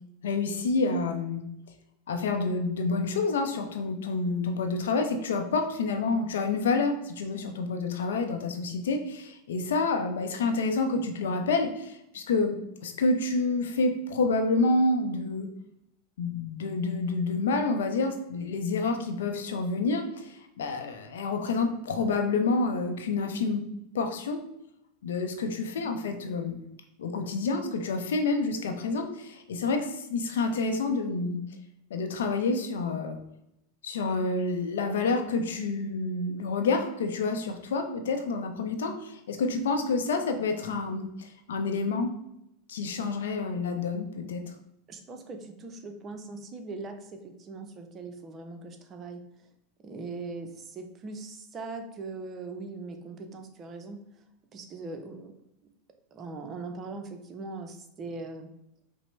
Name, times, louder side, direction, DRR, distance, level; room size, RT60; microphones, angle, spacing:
voice 1, 0.2-1.4 2.1-12.6 12.8-15.5 16.2-23.6 23.9-24.4 25.0-26.6 27.0-31.4 31.9-33.2 33.8-42.2 42.7-44.4, left 3 dB, 70° left, 5 dB, 0.5 m, -28 dB
voice 2, 44.9-49.2 49.8-54.0 54.5-55.3 56.1-58.5, right 3 dB, 30° right, 5 dB, 0.5 m, -40 dB
5.0 x 2.0 x 3.1 m, 0.81 s
hypercardioid pair, 90°, 0 cm